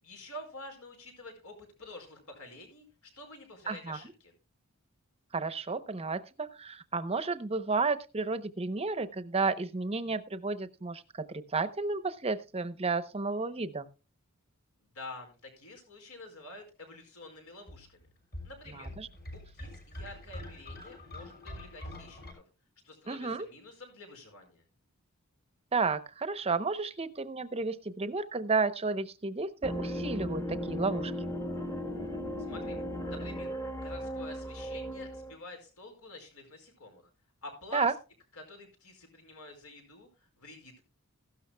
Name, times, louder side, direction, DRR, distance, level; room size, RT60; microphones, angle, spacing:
voice 1, 0.0-4.3 14.8-18.0 18.4-18.9 19.3-22.4 22.8-24.6 32.5-32.8 33.1-33.5 33.8-37.1 37.4-37.9 38.3-40.8, left 2 dB, 80° left, 4 dB, 4.9 m, -48 dB
voice 2, 3.7-4.0 5.3-13.9 18.7-19.1 23.1-23.5 25.7-31.1 37.7-37.9, right 4 dB, 25° right, 12 dB, 0.7 m, -32 dB
sound 1, 17.7-22.3, left 1 dB, 50° left, 6.4 m, -45 dB
sound 2, 29.6-35.4, equal, 15° left, 1.1 m, -36 dB
16.0 x 12.5 x 2.2 m, 0.31 s
head